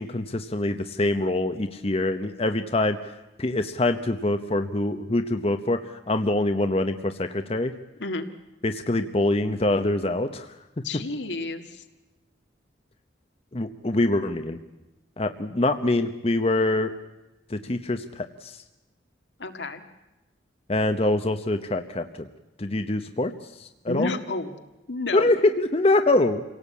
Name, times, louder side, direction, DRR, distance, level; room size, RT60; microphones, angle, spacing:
voice 1, 0.0-3.0 3.4-7.7 8.6-10.5 13.5-14.6 15.2-16.9 17.5-18.6 20.7-22.3 22.6-23.3 23.6-24.1 25.1-26.4, left 2 dB, 35° left, 7 dB, 0.9 m, -24 dB
voice 2, 10.8-11.8 19.4-19.8 23.9-24.5 24.9-25.3, left 3 dB, 75° left, 7 dB, 1.9 m, -31 dB
27.0 x 17.5 x 8.4 m, 1.0 s
head